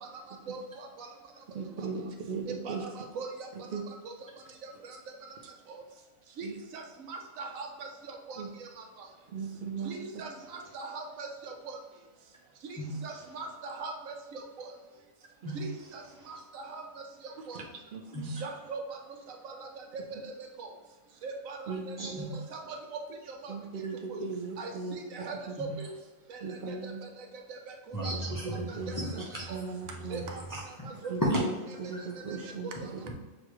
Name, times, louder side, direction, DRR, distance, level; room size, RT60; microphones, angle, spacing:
voice 1, 0.5-1.1 2.5-3.3 4.0-4.1 4.6-5.0 5.7-5.8 6.4-6.5 6.7-8.7 9.8-11.8 12.7-14.7 15.5-16.0 16.3-16.9 17.5-17.6 18.4-19.0 19.3-20.3 20.6-20.7 21.2-23.0 23.4-23.5 24.1-24.2 24.6-25.9 26.3-27.6 27.9-28.1 28.7-28.9 29.5-29.6 30.1-30.4 31.0-31.1 32.0-32.4 32.6-33.1, right 4 dB, 90° right, 3 dB, 1.1 m, -41 dB
voice 2, 1.5-2.8 3.7-3.8 6.4-6.5 8.4-8.5 9.3-10.2 15.4-15.5 17.5-17.6 17.9-18.4 20.2-20.3 21.7-22.3 23.5-25.0 26.4-27.0 28.6-29.2 29.5-30.2 31.1-31.5 31.9-32.7, right 4 dB, 50° right, 2 dB, 0.7 m, -38 dB
voice 3, 12.8-13.3 15.4-15.9 16.2-16.3 18.1-18.4 22.0-22.4 25.6-25.7 27.9-31.4 31.7-32.5, right 1 dB, 20° left, -4 dB, 0.5 m, -36 dB
6.5 x 2.4 x 3.0 m, 1.2 s
omnidirectional pair, 1.3 m